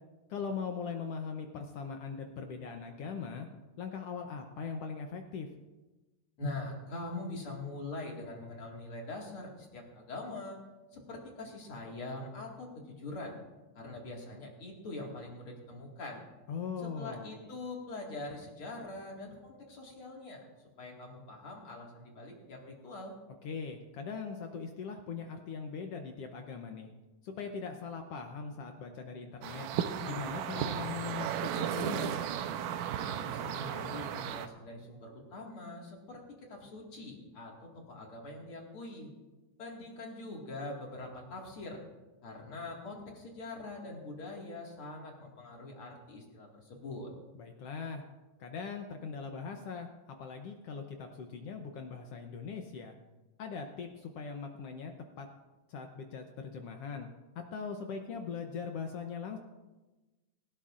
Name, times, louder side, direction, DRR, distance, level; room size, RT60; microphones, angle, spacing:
voice 1, 0.3-3.5 3.8-5.5 16.5-17.3 23.4-26.9 27.2-29.7 30.0-32.1 47.3-48.1 48.4-52.9 53.4-54.9 55.2-55.3 55.7-57.1 57.3-59.4, left 5 dB, 75° left, 4 dB, 1.4 m, -40 dB
voice 2, 6.4-10.6 10.9-13.3 13.7-16.2 16.8-20.5 20.8-23.2 33.0-39.1 39.6-41.8 42.2-47.1, left 2 dB, 45° left, -1 dB, 2.6 m, -43 dB
sound 1, 29.4-34.5, right 9 dB, 90° right, 2.3 m, -35 dB
18.5 x 16.5 x 2.5 m, 1.2 s
omnidirectional pair, 3.7 m